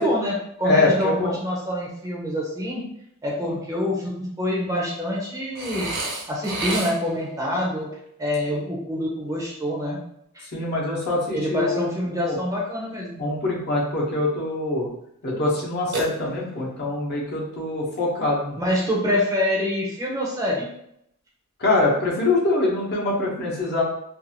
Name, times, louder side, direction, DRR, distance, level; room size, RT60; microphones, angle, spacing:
voice 1, 0.0-2.8 3.2-5.9 6.3-7.9 8.2-10.0 10.3-10.4 11.3-13.2 18.6-20.7, left 1 dB, 15° right, -3 dB, 0.6 m, -26 dB
voice 2, 0.6-1.3 3.4-3.5 10.5-12.4 13.2-14.9 15.2-18.6 21.6-23.8, left 2 dB, 50° left, -4 dB, 0.8 m, -24 dB
Burping eructation, 5.5-7.3 15.9-16.7, right 2 dB, 55° right, 0.7 m, -30 dB
2.6 x 2.4 x 2.8 m, 0.74 s
head